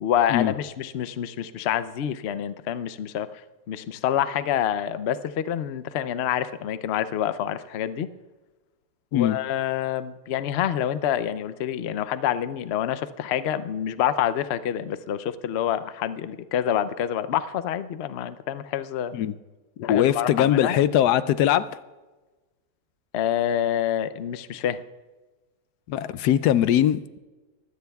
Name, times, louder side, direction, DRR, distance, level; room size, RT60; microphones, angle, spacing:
voice 1, 0.0-3.4 3.7-8.1 9.1-19.1 19.8-20.8 23.1-24.8, left 10 dB, 90° left, 12 dB, 0.5 m, -27 dB
voice 2, 19.8-21.6 25.9-27.2, left 11 dB, 70° left, 15 dB, 1.1 m, -21 dB
23.0 x 16.0 x 2.3 m, 1.2 s
omnidirectional pair, 1.9 m